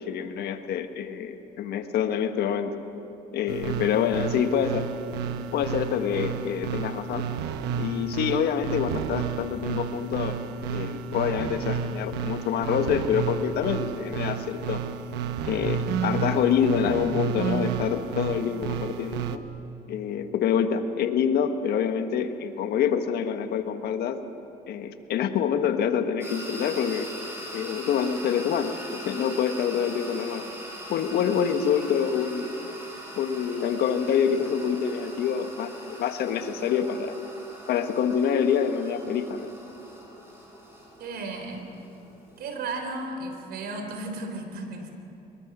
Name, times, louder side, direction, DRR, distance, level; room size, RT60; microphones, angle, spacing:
voice 1, 0.0-2.7 3.3-4.9 5.5-7.3 7.8-10.4 10.7-14.8 15.4-19.4 19.9-24.2 24.7-27.1 27.5-30.5 30.9-32.5 33.2-37.1 37.7-39.5, left 7 dB, 70° left, 8 dB, 1.4 m, -26 dB
sound 1, 3.5-19.4, right 7 dB, 85° right, 1.1 m, -31 dB
sound 2, 26.2-42.8, equal, 15° right, 7.3 m, -42 dB
voice 2, 41.0-41.8 42.4-44.9, right 2 dB, 70° right, 5 dB, 3.7 m, -34 dB
24.5 x 22.0 x 6.2 m, 2.9 s
cardioid pair, 110°, 17 cm